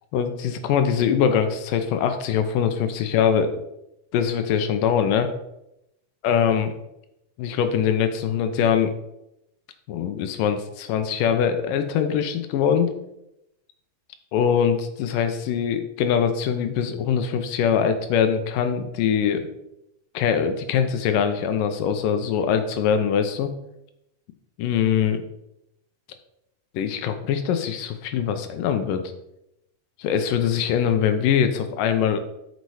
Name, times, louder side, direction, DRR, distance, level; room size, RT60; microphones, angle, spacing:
voice 1, 0.1-3.5 4.1-5.3 6.2-6.7 7.4-8.9 9.9-12.9 14.3-19.5 20.1-23.5 24.6-25.2 26.7-29.0 30.0-32.2, left 8 dB, 75° left, 8 dB, 2.2 m, -22 dB
8.4 x 6.8 x 4.8 m, 0.84 s
omnidirectional pair, 4.3 m